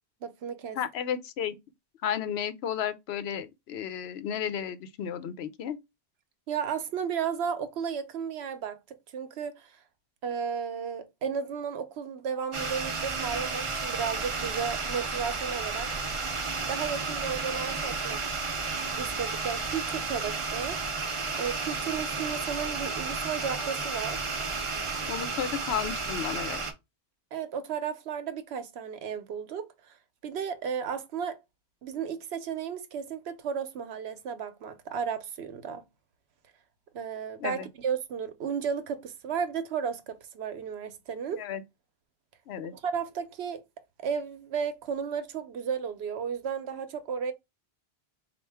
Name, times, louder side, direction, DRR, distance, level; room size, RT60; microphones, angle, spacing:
voice 1, 0.2-0.8 6.5-9.7 10.2-15.9 16.6-18.2 19.0-20.8 21.4-24.2 27.3-30.0 30.2-31.4 31.8-35.8 36.9-41.4 42.7-43.6 44.0-47.3, right 7 dB, 85° right, 0.9 m, -34 dB
voice 2, 0.8-1.5 2.0-5.8 25.1-26.6 37.4-37.7 41.4-41.6 42.5-42.7, left 9 dB, 90° left, 0.9 m, -33 dB
sound 1, 12.5-26.7, right 4 dB, 35° right, 0.6 m, -32 dB
4.3 x 2.4 x 3.3 m
omnidirectional pair, 1.1 m